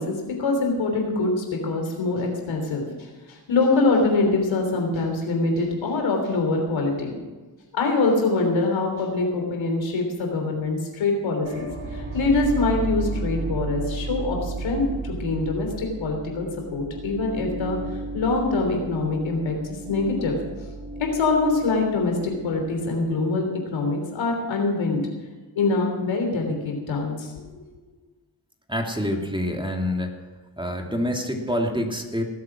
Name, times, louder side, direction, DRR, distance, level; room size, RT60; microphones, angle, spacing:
voice 1, 0.0-2.8 3.3-7.1 7.7-16.5 16.7-17.8 18.1-19.6 19.9-20.4 21.1-25.0 25.6-27.3, left 3 dB, 80° left, 2 dB, 3.4 m, -24 dB
sound 1, 11.4-23.3, right 2 dB, 70° right, 4.0 m, -33 dB
voice 2, 28.7-30.1 30.6-32.2, equal, 10° right, 2 dB, 2.8 m, -26 dB
19.0 x 8.1 x 6.1 m, 1.3 s
supercardioid pair, 45°, 45 cm